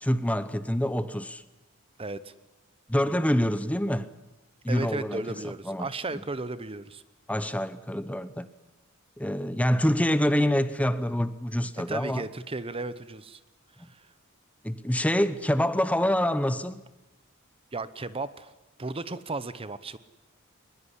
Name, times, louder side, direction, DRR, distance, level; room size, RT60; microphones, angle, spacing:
voice 1, 0.0-1.4 2.9-4.1 4.6-5.9 6.1-6.2 7.3-8.5 9.2-12.3 14.6-16.8, equal, 5° left, 0.9 m, -26 dB
voice 2, 2.0-2.3 4.7-7.0 11.7-13.4 13.9-14.0 17.7-18.5 18.8-20.0, right 3 dB, 25° right, 0.9 m, -35 dB
23.0 x 21.0 x 10.0 m
head